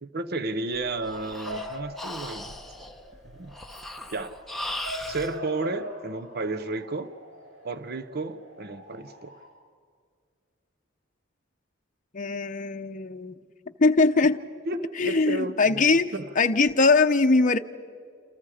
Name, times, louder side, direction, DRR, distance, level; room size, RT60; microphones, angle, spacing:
voice 1, 0.0-2.5 3.3-3.6 4.1-4.3 5.1-7.1 7.6-9.4 14.6-16.3, right 2 dB, 55° right, 12 dB, 0.8 m, -32 dB
Breathing, 0.7-5.3, left 1 dB, ahead, 1.0 m, -38 dB
Bark / Motor vehicle (road) / Siren, 0.7-9.5, equal, 75° right, 7.6 m, -42 dB
voice 2, 12.1-13.4 13.8-14.4 15.0-17.6, left 3 dB, 40° left, 6 dB, 0.8 m, -21 dB
28.5 x 27.5 x 5.0 m, 2.1 s
head